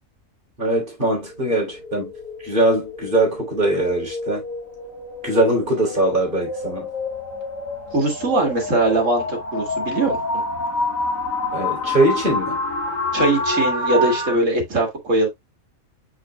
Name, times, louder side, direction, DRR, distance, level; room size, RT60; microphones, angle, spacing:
voice 1, 0.6-2.1 2.4-4.4 5.2-6.9 11.5-12.6, right 1 dB, 35° right, 3.5 m, -21 dB
sound 1, 1.1-14.4, left 2 dB, 75° left, 2.7 m, -27 dB
voice 2, 7.9-10.2 13.1-15.3, right 2 dB, 65° right, 2.3 m, -21 dB
6.7 x 6.4 x 2.3 m
omnidirectional pair, 1.4 m